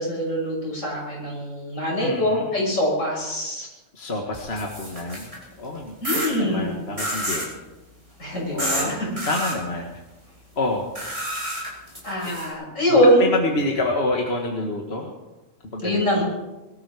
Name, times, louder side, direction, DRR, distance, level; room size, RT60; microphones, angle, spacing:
voice 1, 0.0-3.7 6.0-6.7 8.2-9.1 12.0-13.3 15.8-16.2, equal, 80° left, -3 dB, 6.6 m, -23 dB
voice 2, 2.0-2.5 3.6-3.7 3.9-7.5 8.5-9.9 10.6-10.9 12.2-12.3 12.9-15.1 15.6-16.2, left 2 dB, 55° left, 1 dB, 1.9 m, -28 dB
sound 1, 4.3-5.4 6.0-6.3 7.0-7.5 8.6-8.9 9.2-9.5 10.9-12.5, right 1 dB, 25° right, 5.3 m, -29 dB
22.0 x 13.5 x 4.9 m, 1.1 s
omnidirectional pair, 1.3 m